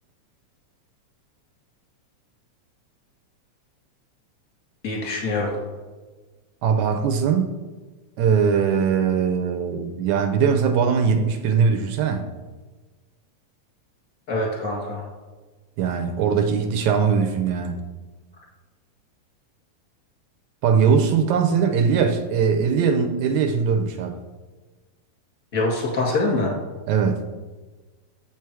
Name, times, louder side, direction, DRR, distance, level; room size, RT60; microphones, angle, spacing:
voice 1, 4.8-5.5 14.3-15.0 25.5-26.5, left 2 dB, 30° left, -2 dB, 1.9 m, -24 dB
voice 2, 6.6-7.5 8.2-12.3 15.8-17.8 20.6-24.2 26.9-27.2, right 6 dB, 75° right, 6 dB, 1.9 m, -21 dB
7.8 x 4.7 x 4.6 m, 1.3 s
omnidirectional pair, 3.5 m